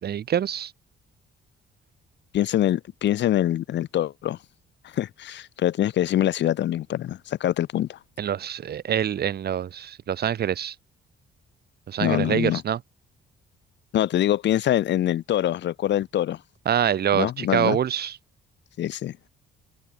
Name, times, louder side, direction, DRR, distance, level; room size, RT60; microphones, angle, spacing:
voice 1, 0.0-0.7 8.2-10.7 11.9-12.8 16.6-18.2, right 9 dB, 55° right, 1.1 m, -25 dB
voice 2, 2.3-4.4 4.9-8.0 12.0-12.6 13.9-16.4 17.1-17.8 18.8-19.1, left 12 dB, 65° left, 0.7 m, -24 dB
cardioid pair, 90°, 20 cm